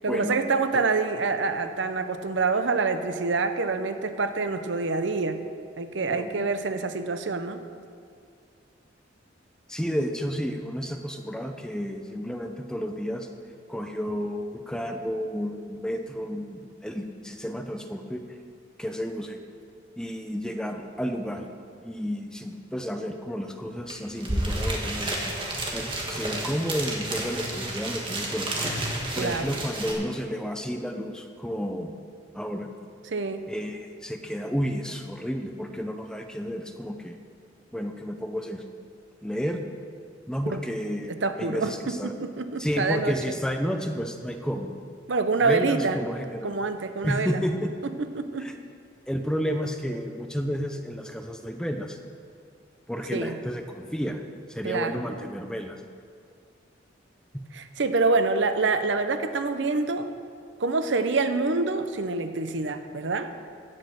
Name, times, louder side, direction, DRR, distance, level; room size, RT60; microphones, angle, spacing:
voice 1, 0.0-5.4 5.8-7.6 29.2-29.5 33.1-33.5 40.5-40.6 41.2-43.2 45.1-46.0 46.4-47.4 48.0-48.5 53.1-53.3 54.6-55.0 57.5-60.1 60.6-63.3, right 3 dB, 75° right, 9 dB, 0.8 m, -26 dB
voice 2, 6.1-6.5 9.7-13.3 13.7-18.2 18.8-19.4 20.0-21.4 21.8-25.3 25.7-28.5 29.1-31.9 32.3-32.7 33.5-37.2 37.7-38.6 39.2-39.6 40.3-42.1 42.6-44.7 45.4-46.5 47.0-47.7 48.4-48.5 49.1-52.0 52.9-54.2 54.5-55.8, equal, 5° left, 5 dB, 0.7 m, -31 dB
sound 1, 23.9-24.0 24.2-29.9, right 1 dB, 25° right, 1.7 m, -31 dB
16.0 x 6.5 x 6.5 m, 2.3 s
head